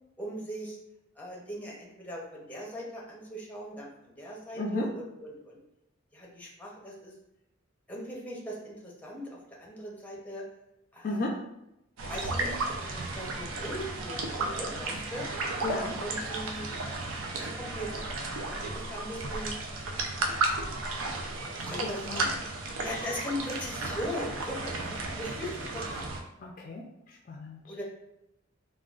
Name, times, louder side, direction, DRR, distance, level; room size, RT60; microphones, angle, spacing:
voice 1, 0.2-0.8 1.2-5.6 6.1-7.1 7.9-10.4 10.9-11.3 12.1-12.6 12.9-15.3 16.0-16.7 17.3-18.0 18.7-19.5 21.5-22.6 22.8-26.1 27.7-27.8, equal, 10° left, -3 dB, 0.7 m, -39 dB
voice 2, 4.5-4.9 11.0-11.4 15.6-16.0 21.8-22.3 26.4-27.7, left 2 dB, 45° left, -1 dB, 0.3 m, -34 dB
sound 1, 12.0-26.2, right 2 dB, 85° right, 0.5 m, -34 dB
3.6 x 2.2 x 2.3 m, 0.86 s
head